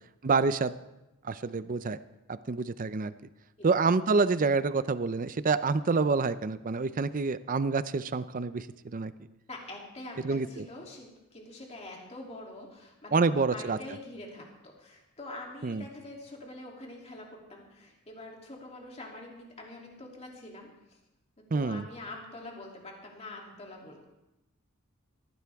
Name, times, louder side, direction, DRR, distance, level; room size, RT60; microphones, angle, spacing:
voice 1, 0.2-0.8 1.2-2.0 2.3-3.1 3.6-9.1 10.2-10.7 13.1-13.8 15.6-15.8 21.5-21.9, right 4 dB, 40° right, 14 dB, 0.5 m, -27 dB
voice 2, 9.5-21.0 21.5-24.1, left 2 dB, 30° left, -1 dB, 3.0 m, -45 dB
18.0 x 15.0 x 3.6 m, 0.96 s
head